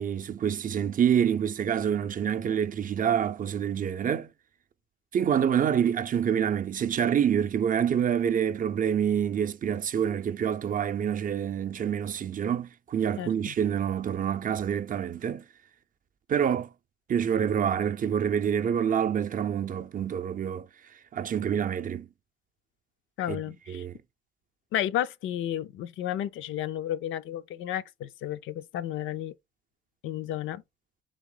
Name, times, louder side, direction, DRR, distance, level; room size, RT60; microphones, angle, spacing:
voice 1, 0.0-4.3 5.1-15.4 16.3-16.7 17.1-20.7 21.1-22.1 23.3-23.4 23.7-23.9, right 8 dB, 45° right, 0.5 m, -27 dB
voice 2, 13.2-13.5 23.2-23.8 24.7-29.3 30.0-30.6, left 12 dB, 80° left, 0.5 m, -32 dB
3.5 x 2.9 x 3.7 m
cardioid pair, 90°, 20 cm